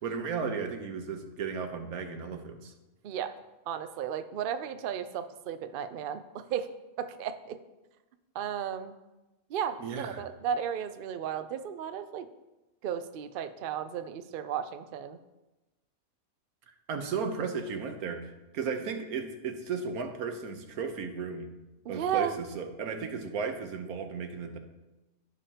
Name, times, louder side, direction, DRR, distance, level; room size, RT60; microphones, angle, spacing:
voice 1, 0.0-2.7 9.8-10.2 16.9-21.5 21.9-24.6, right 5 dB, 90° right, 6 dB, 1.4 m, -35 dB
voice 2, 3.7-6.7 7.0-7.6 8.3-8.9 9.5-12.3 12.8-15.2 21.8-22.3, right 8 dB, 65° right, 10 dB, 0.5 m, -34 dB
15.5 x 5.3 x 2.9 m, 1.1 s
omnidirectional pair, 1.5 m